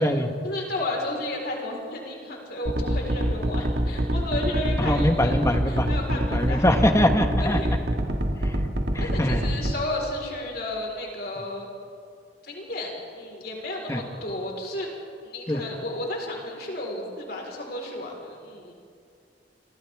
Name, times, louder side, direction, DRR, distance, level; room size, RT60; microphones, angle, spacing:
voice 1, 0.4-6.8 7.4-7.8 9.0-11.7 12.4-14.9 15.2-18.7, left 1 dB, 60° left, -1 dB, 4.4 m, -33 dB
sound 1, 2.7-9.7, equal, 70° right, 2.0 m, -25 dB
voice 2, 4.8-7.6 8.9-9.4 13.9-14.0 15.5-15.6, left 1 dB, 15° left, 5 dB, 1.4 m, -23 dB
29.0 x 25.0 x 3.6 m, 2.4 s
head